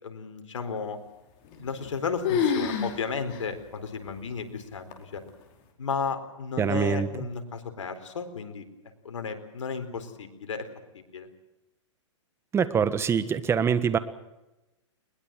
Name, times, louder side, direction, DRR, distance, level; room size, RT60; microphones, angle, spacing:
voice 1, 0.0-1.0 1.5-5.2 5.8-8.7 9.0-10.7 10.9-11.3, left 5 dB, 85° left, 8 dB, 4.1 m, -34 dB
sound 1, 1.5-2.0 2.2-3.0 3.3-3.4 4.1-4.2 4.9-5.3, left 7 dB, 40° left, 5.0 m, -27 dB
voice 2, 6.6-7.3 12.5-14.0, right 7 dB, 15° right, 13 dB, 1.5 m, -24 dB
21.5 x 21.0 x 7.6 m, 0.99 s
hypercardioid pair, 130°, 16 cm